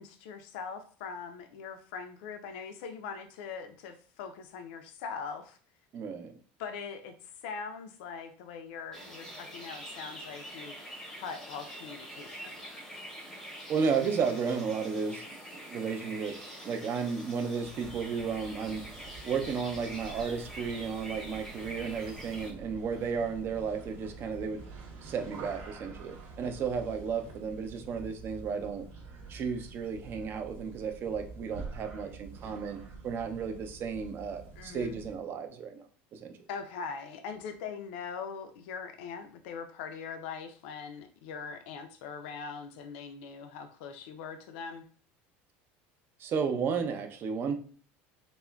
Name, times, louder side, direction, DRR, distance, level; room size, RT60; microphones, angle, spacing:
voice 1, 0.0-5.6 6.6-10.7 11.2-12.6 34.6-35.0 36.5-44.8, left 6 dB, 80° left, 8 dB, 0.4 m, -41 dB
voice 2, 5.9-6.4 13.7-18.9 19.2-24.6 25.0-28.9 29.3-36.4 46.2-47.5, right 6 dB, 40° right, 5 dB, 0.5 m, -33 dB
sound 1, 8.9-22.5, equal, 10° left, 0.7 m, -45 dB
sound 2, 17.6-35.3, right 4 dB, 70° right, 1.0 m, -47 dB
3.5 x 2.1 x 2.3 m, 0.44 s
supercardioid pair, 130°, 6 cm